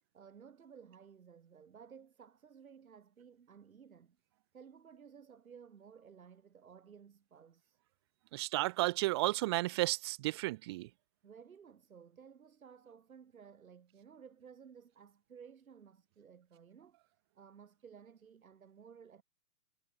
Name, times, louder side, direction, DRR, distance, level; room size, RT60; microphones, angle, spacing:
voice 1, 0.1-4.2 4.5-7.8 11.2-17.0 17.3-19.2, right 7 dB, 65° right, 7.7 m, -56 dB
voice 2, 8.3-10.9, right 19 dB, 20° right, 0.7 m, -33 dB
hypercardioid pair, 140°, 45 cm